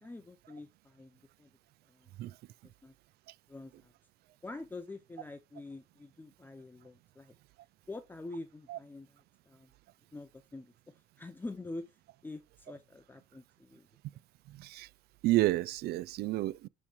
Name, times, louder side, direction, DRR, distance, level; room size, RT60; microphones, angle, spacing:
voice 1, 0.0-1.5 1.9-2.1 2.8-2.9 3.5-3.9 4.4-7.3 7.9-9.2 9.5-9.7 10.1-12.0 12.2-13.9, left 2 dB, 10° left, 0.5 m, -46 dB
voice 2, 14.5-14.9 15.2-16.7, right 16 dB, 70° right, 0.4 m, -30 dB
8.6 x 3.1 x 5.0 m
cardioid pair, 110°, 17 cm